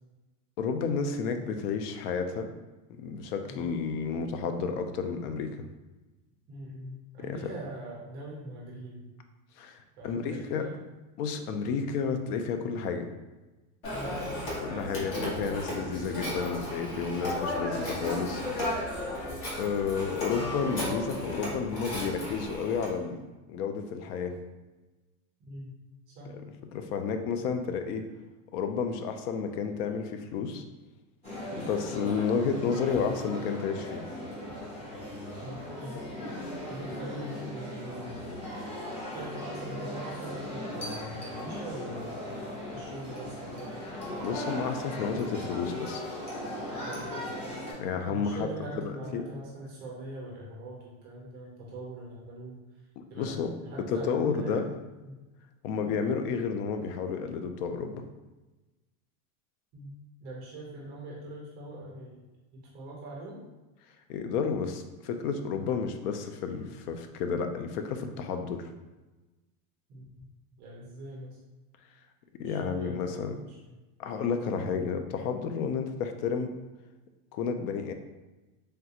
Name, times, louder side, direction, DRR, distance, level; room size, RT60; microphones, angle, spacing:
voice 1, 0.6-2.5 2.9-5.7 7.2-7.4 9.6-10.7 11.2-13.1 14.6-18.9 19.6-24.4 26.3-26.4 26.7-28.0 28.5-30.6 31.5-34.0 44.2-46.0 47.8-48.5 49.1-49.3 53.0-53.5 53.9-54.7 55.6-58.0 64.1-68.7 72.3-73.3 74.0-76.5 77.3-77.9, left 6 dB, 85° left, 7 dB, 0.5 m, -31 dB
voice 2, 6.5-9.0 10.0-10.8 13.9-14.2 25.4-25.8 26.1-26.3 35.4-36.1 36.7-38.3 39.1-42.4 42.7-43.8 46.8-47.1 48.1-52.6 53.1-54.6 55.0-55.2 59.7-59.9 60.2-62.2 62.6-63.4 69.9-70.3 70.6-71.4 72.4-73.7, right 1 dB, 25° right, -3 dB, 0.3 m, -42 dB
Telephone, 13.8-22.9, left 1 dB, 50° left, 1.1 m, -34 dB
sound 1, 31.2-47.7, left 1 dB, 15° left, 0.6 m, -38 dB
3.3 x 2.4 x 2.7 m, 1.1 s
supercardioid pair, 160°, 45 cm